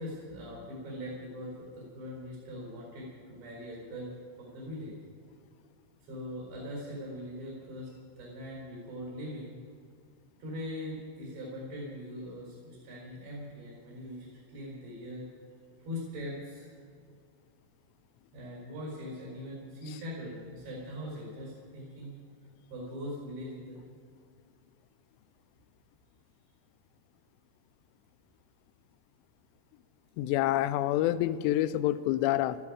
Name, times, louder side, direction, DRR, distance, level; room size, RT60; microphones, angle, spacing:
voice 1, 0.0-4.1 4.4-4.9 6.1-7.9 8.2-9.6 10.4-15.2 15.8-16.7 18.3-22.2 22.7-23.8, left 1 dB, 80° right, -4 dB, 6.6 m, -41 dB
voice 2, 30.2-32.6, left 14 dB, 85° left, 13 dB, 2.8 m, -27 dB
20.0 x 13.0 x 4.9 m, 2.2 s
omnidirectional pair, 5.0 m